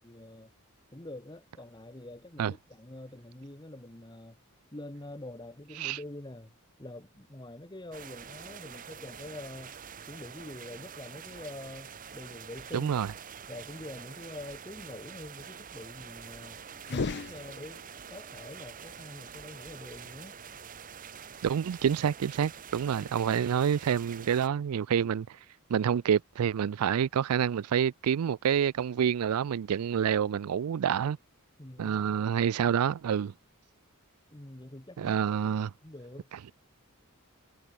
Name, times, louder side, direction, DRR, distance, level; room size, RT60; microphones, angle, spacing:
voice 1, 0.0-0.5 0.9-4.4 4.7-9.7 10.1-13.1 13.5-16.6 16.9-17.8 18.1-20.3 31.6-32.2 34.3-35.2 35.6-36.3, left 1 dB, 20° left, 1.6 m, -45 dB
sound 1, 7.9-24.5, right 7 dB, 40° right, 0.9 m, -46 dB
voice 2, 12.7-13.1 21.4-25.3 25.7-31.2 31.8-33.3 35.0-35.7, right 8 dB, 80° right, 0.4 m, -27 dB
sound 2, 16.8-18.1, left 4 dB, 50° left, 0.6 m, -35 dB
head